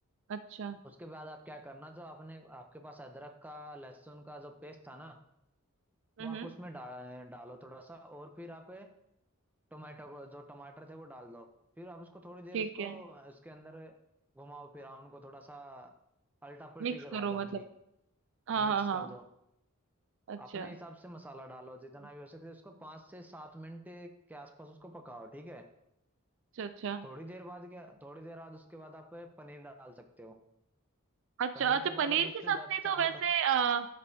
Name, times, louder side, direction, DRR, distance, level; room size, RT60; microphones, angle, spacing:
voice 1, 0.3-0.8 6.2-6.5 12.5-13.0 16.8-17.6 18.5-19.1 20.3-20.7 26.6-27.1 31.4-33.9, right 7 dB, 60° right, 11 dB, 0.4 m, -32 dB
voice 2, 0.8-5.2 6.2-8.9 9.7-11.5 11.8-14.0 14.3-15.9 16.4-17.6 18.5-19.2 20.4-25.7 27.0-30.4 31.5-33.2, equal, 10° right, 5 dB, 0.6 m, -48 dB
12.5 x 5.4 x 2.7 m, 0.80 s
head